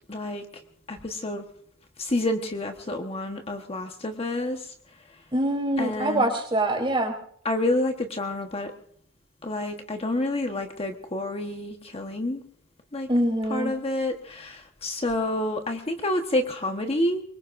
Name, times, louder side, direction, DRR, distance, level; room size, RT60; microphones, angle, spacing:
voice 1, 0.1-0.4 0.9-1.4 2.0-4.7 5.8-6.3 7.4-8.7 9.4-12.4 12.9-13.1 13.5-17.2, left 1 dB, 30° left, 4 dB, 1.2 m, -28 dB
voice 2, 5.3-7.1 13.1-13.7, right 1 dB, 25° right, 2 dB, 3.5 m, -24 dB
24.0 x 22.0 x 2.6 m, 0.63 s
head